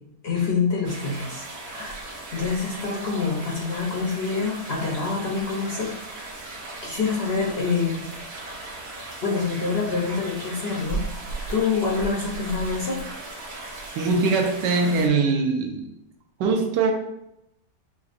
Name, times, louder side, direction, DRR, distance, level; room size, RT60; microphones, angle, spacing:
voice 1, 0.2-2.0 2.3-6.0 6.8-8.0 9.2-11.0 11.5-13.0, left 4 dB, 55° left, -3 dB, 0.7 m, -26 dB
sound 1, 0.8-15.1, right 2 dB, 45° right, 1.0 m, -37 dB
voice 2, 13.9-15.9 16.4-16.9, right 3 dB, 85° right, 4 dB, 1.3 m, -22 dB
6.7 x 2.7 x 2.4 m, 0.83 s
omnidirectional pair, 1.8 m